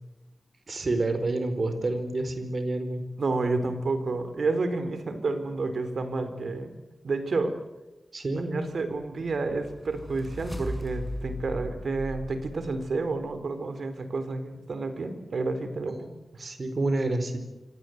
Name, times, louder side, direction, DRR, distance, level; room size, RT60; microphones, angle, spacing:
voice 1, 0.7-3.0 8.1-8.6 15.9-16.0 16.4-17.4, right 2 dB, 50° right, 8 dB, 4.6 m, -28 dB
voice 2, 3.2-6.7 7.0-7.6 8.5-16.1, right 3 dB, 70° right, 9 dB, 4.0 m, -30 dB
sound 1, 9.0-13.2, equal, ahead, 5.6 m, -38 dB
27.5 x 25.5 x 8.1 m, 1.0 s
wide cardioid pair, 105°, 0 cm